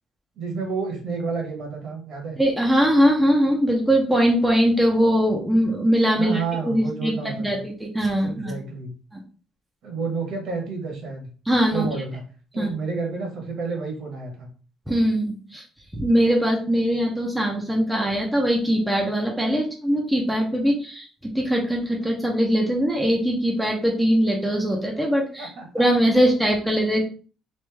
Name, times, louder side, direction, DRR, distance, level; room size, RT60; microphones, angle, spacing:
voice 1, 0.4-2.4 6.2-7.6 8.2-8.9 9.8-11.3 11.7-12.2 12.5-14.5 25.4-25.8 26.1-26.2, right 4 dB, 55° right, 2 dB, 1.1 m, -30 dB
voice 2, 2.4-8.5 9.1-9.2 11.5-11.9 12.6-12.7 14.9-15.6 15.9-25.5 25.7-27.0, equal, ahead, -1 dB, 0.6 m, -21 dB
3.2 x 2.6 x 3.3 m, 0.38 s
cardioid pair, 165°, 0 cm